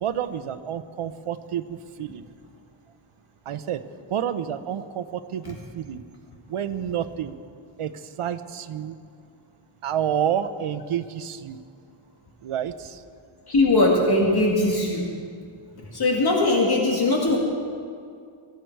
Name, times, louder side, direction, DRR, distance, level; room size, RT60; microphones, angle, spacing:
voice 1, 0.0-2.2 3.5-3.8 4.1-6.0 6.5-7.3 7.8-9.0 9.8-11.6 12.4-13.0, right 9 dB, 80° right, 11 dB, 0.8 m, -29 dB
voice 2, 13.5-15.1 15.9-17.4, left 2 dB, 50° left, -2 dB, 2.0 m, -20 dB
21.0 x 14.0 x 4.6 m, 2.3 s
wide cardioid pair, 175°, 50 cm